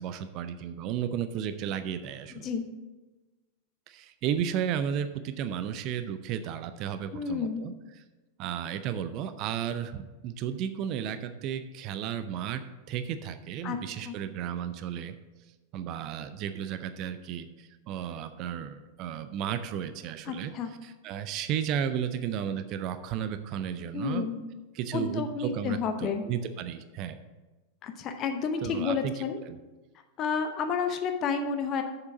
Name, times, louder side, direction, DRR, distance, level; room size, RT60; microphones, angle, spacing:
voice 1, 0.0-2.5 3.9-8.0 8.4-15.2 15.7-24.3 24.7-27.2 28.6-29.6, right 9 dB, 40° right, 11 dB, 0.5 m, -34 dB
voice 2, 7.1-7.7 13.6-13.8 14.1-14.2 20.3-20.7 23.9-24.4 24.9-26.2 27.8-29.4 30.2-31.8, left 5 dB, 35° left, 6 dB, 0.8 m, -30 dB
7.0 x 6.7 x 6.0 m, 1.2 s
figure-of-eight pair, 90°, 0 cm